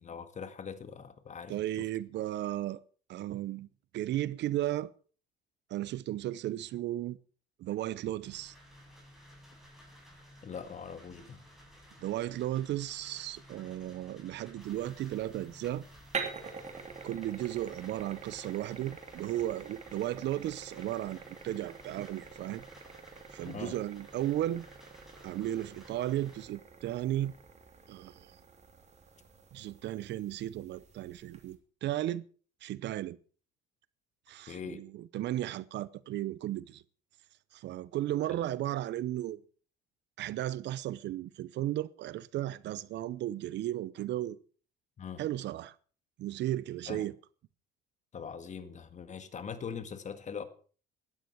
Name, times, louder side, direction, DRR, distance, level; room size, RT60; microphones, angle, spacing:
voice 1, 0.0-1.9 10.4-11.4 23.4-23.8 34.5-34.8 38.3-38.4 45.0-45.2 46.9-47.1 48.1-50.4, left 6 dB, 40° left, 1.8 m, -42 dB
voice 2, 1.5-2.8 3.1-3.7 3.9-4.9 5.7-7.2 7.6-8.5 12.0-15.9 17.0-22.6 23.3-24.7 25.2-27.3 27.9-28.3 29.5-32.2 32.6-33.2 34.3-36.8 37.5-39.4 40.2-44.4 45.2-45.7 46.2-47.1, right 13 dB, 65° right, 0.7 m, -35 dB
sound 1, 8.2-26.4, equal, ahead, 7.5 m, -56 dB
sound 2, 14.6-31.5, right 5 dB, 35° right, 3.0 m, -47 dB
16.5 x 13.0 x 4.6 m
cardioid pair, 115°, 20 cm